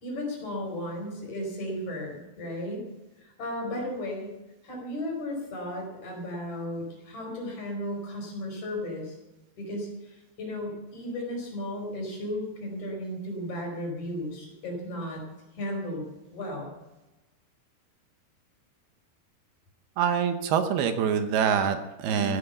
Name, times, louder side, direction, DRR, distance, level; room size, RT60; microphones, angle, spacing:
voice 1, 0.0-2.9 3.2-4.4 4.6-9.2 9.6-15.2 15.6-16.1 16.3-16.7 22.1-22.4, left 1 dB, 45° left, 0 dB, 5.9 m, -35 dB
voice 2, 20.0-22.4, right 7 dB, 75° right, 8 dB, 2.9 m, -25 dB
15.0 x 10.5 x 7.0 m, 1.0 s
omnidirectional pair, 4.6 m